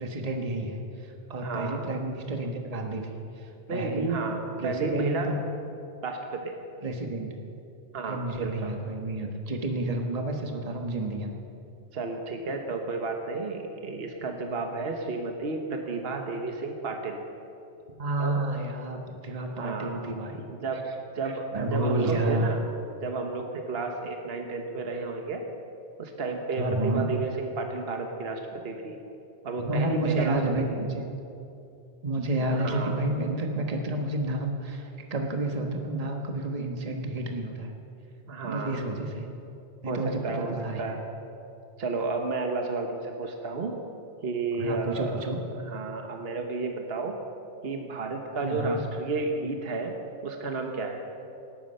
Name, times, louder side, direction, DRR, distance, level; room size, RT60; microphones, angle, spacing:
voice 1, 0.0-3.1 3.3-4.2 4.6-5.3 6.8-7.3 8.0-11.3 17.9-20.4 21.5-22.5 26.6-27.1 29.6-31.1 32.0-37.7 38.4-39.3 39.8-40.9 44.6-45.4 48.4-48.8, right 2 dB, 35° right, 3 dB, 1.3 m, -30 dB
voice 2, 1.4-1.9 3.7-5.4 6.0-6.5 7.9-8.8 11.9-17.2 18.2-18.5 19.5-20.0 20.5-20.8 21.1-22.6 23.0-25.4 26.0-29.0 29.4-30.4 32.4-33.0 38.3-39.0 39.8-41.0 41.8-43.8 44.2-47.2 47.6-49.9 50.2-51.1, right 3 dB, 60° right, 3 dB, 1.4 m, -32 dB
19.5 x 12.0 x 5.6 m, 2.7 s
omnidirectional pair, 1.2 m